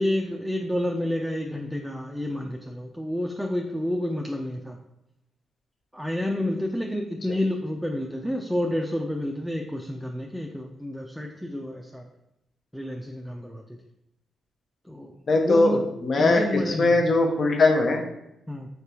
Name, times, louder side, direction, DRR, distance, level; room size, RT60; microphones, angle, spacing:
voice 1, 0.0-4.8 5.9-12.1 12.7-13.8 14.9-15.8 16.2-17.0 18.5-18.7, left 1 dB, ahead, 1 dB, 0.4 m, -29 dB
voice 2, 15.3-18.0, left 2 dB, 50° left, 2 dB, 0.7 m, -21 dB
4.0 x 3.3 x 2.9 m, 0.85 s
hypercardioid pair, 40°, 0 cm